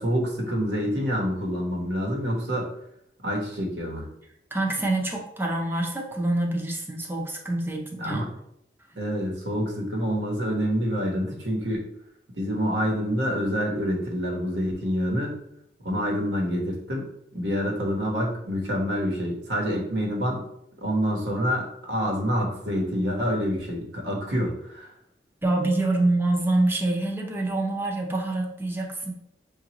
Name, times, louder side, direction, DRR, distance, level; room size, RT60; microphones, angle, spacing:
voice 1, 0.0-2.7 3.2-4.1 8.0-8.3 9.0-11.8 12.3-15.3 15.8-20.4 20.8-24.9, equal, 85° right, -1 dB, 1.2 m, -27 dB
voice 2, 4.5-8.3 25.4-29.1, right 2 dB, 10° right, 1 dB, 0.6 m, -26 dB
6.1 x 2.5 x 2.9 m, 0.77 s
head